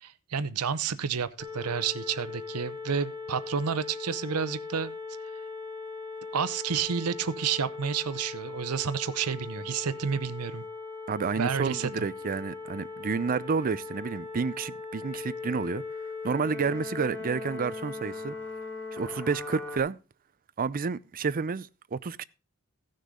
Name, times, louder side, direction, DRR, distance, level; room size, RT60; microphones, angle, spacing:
voice 1, 0.0-4.9 6.3-10.6 11.4-12.1, right 6 dB, 85° right, 0.7 m, -30 dB
sound 1, 1.4-19.8, left 4 dB, 10° left, 2.7 m, -39 dB
voice 2, 11.1-15.8 16.2-18.3 18.9-20.0 20.6-22.2, right 5 dB, 40° right, 0.5 m, -30 dB
16.0 x 6.5 x 3.7 m
head